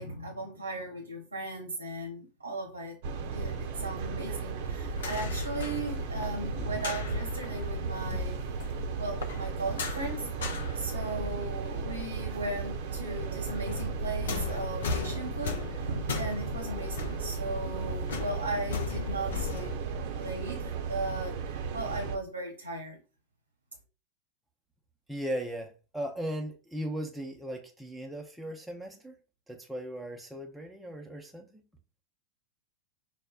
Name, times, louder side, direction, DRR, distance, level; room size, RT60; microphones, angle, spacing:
voice 1, 0.0-3.0 3.3-8.4 9.0-10.3 10.7-19.7 20.1-21.4 21.7-23.0, right 2 dB, 85° right, 1.0 m, -37 dB
sound 1, 3.0-22.2, right 5 dB, 50° right, 0.6 m, -35 dB
sound 2, 4.6-12.5 12.7-19.8, left 6 dB, 60° left, 0.5 m, -38 dB
voice 2, 25.1-29.2 29.5-31.5, equal, 5° right, 0.5 m, -37 dB
6.1 x 2.1 x 2.3 m
figure-of-eight pair, 90°, 0 cm